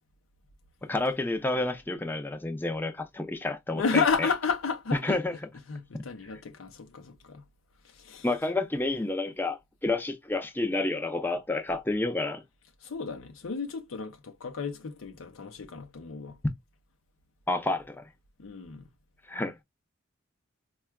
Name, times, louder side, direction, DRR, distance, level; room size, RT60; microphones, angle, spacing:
voice 1, 0.9-4.3 5.0-5.4 5.9-6.0 8.2-12.4 17.5-18.0 19.3-19.5, left 2 dB, 10° left, 0.5 m, -30 dB
voice 2, 3.7-5.2 5.7-7.4 7.8-8.3 12.8-16.4 18.4-18.8, left 5 dB, 90° left, 0.6 m, -32 dB
4.4 x 2.3 x 2.2 m
head